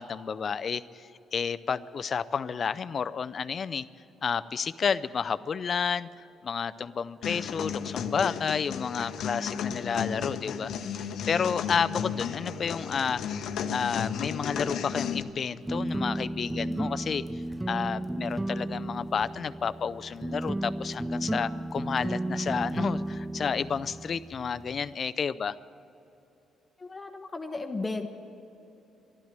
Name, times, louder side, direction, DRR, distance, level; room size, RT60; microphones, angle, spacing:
voice 1, 0.0-3.8 4.2-10.7 11.0-13.3 13.7-17.4 17.7-25.6, left 6 dB, 50° left, 14 dB, 0.5 m, -31 dB
sound 1, 7.2-15.2, left 7 dB, 75° left, 0.8 m, -34 dB
sound 2, 15.6-24.9, right 1 dB, 10° right, 0.4 m, -33 dB
voice 2, 26.8-28.1, left 3 dB, 25° left, 5 dB, 1.0 m, -34 dB
12.0 x 12.0 x 9.5 m, 2.9 s
cardioid pair, 90°, 0 cm